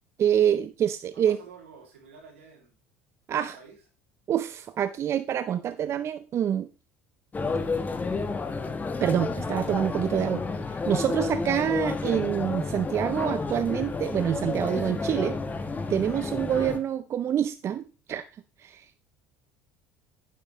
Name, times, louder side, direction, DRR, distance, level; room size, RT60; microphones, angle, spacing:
voice 1, 0.2-1.4 3.3-3.6 4.3-6.7 9.0-10.4 10.7-15.4 15.9-18.3 18.6-19.0, right 9 dB, 45° right, 12 dB, 0.5 m, -26 dB
voice 2, 1.1-2.7 3.3-3.8, right 5 dB, 85° right, 1 dB, 2.5 m, -50 dB
sound 1, 7.3-16.8, left 4 dB, 25° left, 1.1 m, -31 dB
9.3 x 6.8 x 3.0 m, 0.32 s
hypercardioid pair, 70°, 7 cm